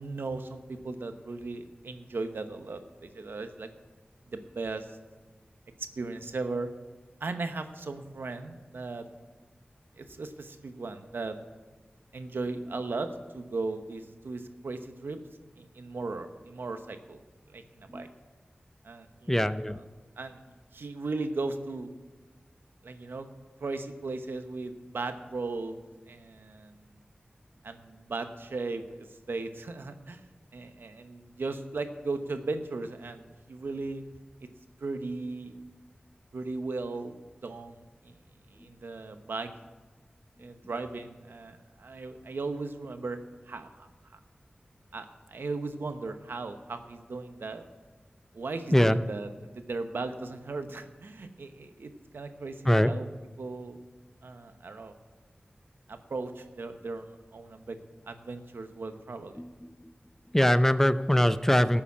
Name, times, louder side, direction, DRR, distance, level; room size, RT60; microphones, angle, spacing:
voice 1, 0.0-3.7 4.3-5.0 6.0-6.7 7.2-9.1 10.0-11.4 12.1-15.2 15.6-17.2 17.5-18.1 18.8-19.3 20.2-20.4 20.7-21.9 22.8-23.3 23.6-25.8 26.1-26.7 27.6-30.3 30.5-34.0 34.8-35.6 36.3-37.1 37.4-38.2 38.5-39.5 40.4-43.2 43.5-44.2 44.9-47.6 48.3-53.1 53.4-53.8 54.2-54.9 55.9-57.8 58.1-59.4, right 3 dB, 90° right, 8 dB, 0.9 m, -37 dB
voice 2, 19.3-19.8 38.6-38.7 40.6-40.7 48.7-49.0 52.6-52.9 59.4-59.9 60.3-61.8, equal, 10° left, 12 dB, 0.5 m, -23 dB
12.5 x 7.1 x 8.3 m, 1.3 s
wide cardioid pair, 75°, 4 cm